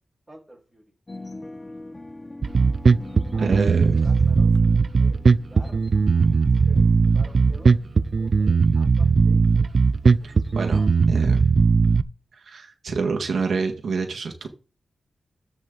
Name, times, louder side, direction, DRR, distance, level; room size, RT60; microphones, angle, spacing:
voice 1, 0.3-0.8 3.3-3.7 3.9-4.5 5.0-5.2 5.5-5.8 6.7-6.9 7.1-7.8 8.2-9.7, right 1 dB, 5° right, -5 dB, 5.2 m, -47 dB
sound 1, 1.1-11.1, left 2 dB, 25° left, 1.0 m, -43 dB
Bass guitar, 2.4-12.0, right 4 dB, 50° right, 0.4 m, -18 dB
voice 2, 3.4-4.0 10.2-11.5 12.3-14.5, right 4 dB, 75° right, 3 dB, 1.8 m, -28 dB
14.0 x 5.5 x 3.9 m, 0.35 s
wide cardioid pair, 120°, 0 cm